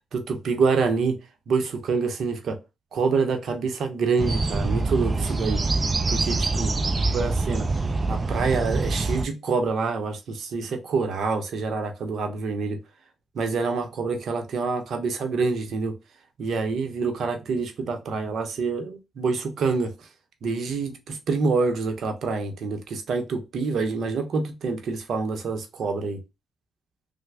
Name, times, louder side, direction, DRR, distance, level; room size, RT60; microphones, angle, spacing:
voice 1, 0.1-1.2 1.5-2.6 2.9-5.6 6.1-6.7 7.1-7.7 8.1-12.8 13.3-15.9 16.4-20.1 20.4-26.2, right 4 dB, 70° right, 0.7 m, -26 dB
sound 1, 4.2-9.3, right 3 dB, 35° right, 0.4 m, -25 dB
3.3 x 2.1 x 3.3 m
supercardioid pair, 60°, 0 cm